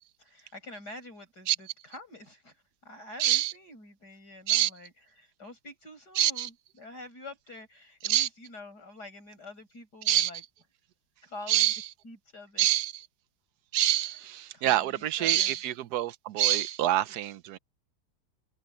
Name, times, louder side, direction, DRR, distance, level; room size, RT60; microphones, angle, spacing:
voice 1, 0.3-2.6 2.8-10.4 11.2-11.7 12.0-12.7 13.9-14.2 14.5-15.5, left 2 dB, 55° left, 7.8 m, -47 dB
voice 2, 3.2-3.5 4.5-4.7 6.2-6.5 8.0-8.3 10.1-10.3 11.5-11.8 12.6-12.9 13.7-17.6, right 13 dB, 65° right, 1.1 m, -26 dB
omnidirectional pair, 2.0 m